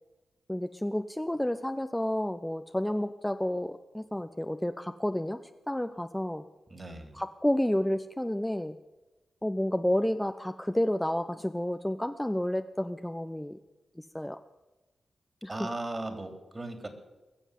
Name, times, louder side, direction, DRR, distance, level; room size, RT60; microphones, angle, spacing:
voice 1, 0.5-5.4 5.7-6.4 7.1-8.7 9.4-13.6 14.1-14.4 15.4-15.7, left 1 dB, 10° left, 8 dB, 0.8 m, -30 dB
voice 2, 6.7-7.1 15.5-16.9, right 2 dB, 35° right, 7 dB, 3.2 m, -37 dB
21.5 x 7.2 x 8.3 m, 1.1 s
supercardioid pair, 45°, 0 cm